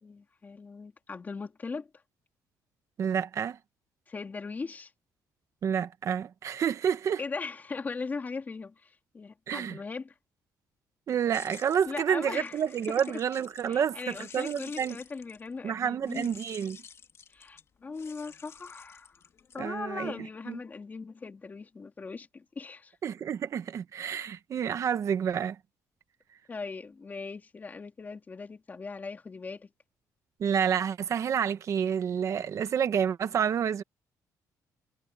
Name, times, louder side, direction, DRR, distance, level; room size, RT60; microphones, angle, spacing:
voice 1, 0.0-1.9 4.1-4.9 7.2-10.2 11.9-12.6 13.1-13.2 13.7-16.4 17.3-19.2 19.5-23.0 26.5-29.7, left 4 dB, 25° left, 2.8 m, -39 dB
voice 2, 3.0-3.6 5.6-7.2 9.5-9.8 11.1-15.0 15.6-16.8 19.6-20.1 20.5-20.6 23.0-25.6 30.4-33.8, right 8 dB, 50° right, 1.2 m, -29 dB
sound 1, 11.3-15.6 16.1-20.0, left 7 dB, 40° left, 2.9 m, -51 dB
cardioid pair, 140°, 7 cm